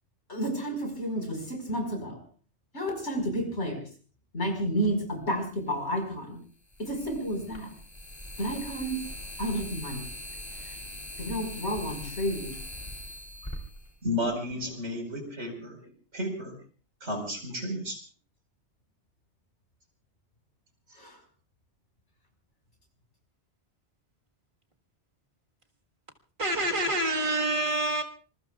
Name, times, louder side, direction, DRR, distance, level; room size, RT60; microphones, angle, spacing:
voice 1, 0.3-2.2 2.7-3.8 4.3-6.4 6.8-7.7 8.4-9.0 9.4-10.0 10.6-10.8 11.2-12.5 14.7-15.0 15.2-15.3 15.6-15.7 20.9-21.2, equal, 80° left, 3 dB, 5.4 m, -31 dB
sound 1, 5.2-5.3 6.7-14.6, left 1 dB, 25° left, 2.9 m, -41 dB
voice 2, 14.0-15.8 16.1-16.5 17.0-18.0, left 1 dB, 85° right, 3 dB, 5.4 m, -32 dB
voice 3, 26.4-28.0, right 1 dB, 45° right, 2 dB, 1.9 m, -27 dB
27.0 x 21.5 x 2.4 m, 0.40 s
omnidirectional pair, 1.2 m